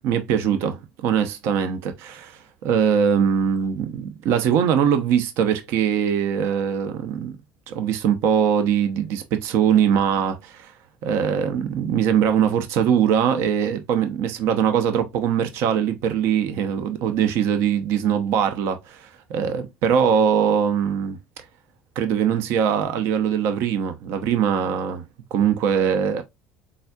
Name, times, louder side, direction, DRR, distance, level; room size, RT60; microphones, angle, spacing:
voice 1, 0.0-7.4 7.7-10.7 11.0-21.2 22.0-25.0 25.3-26.2, right 8 dB, 70° right, 0.8 m, -22 dB
4.1 x 3.5 x 2.3 m
supercardioid pair, 100°, 5 cm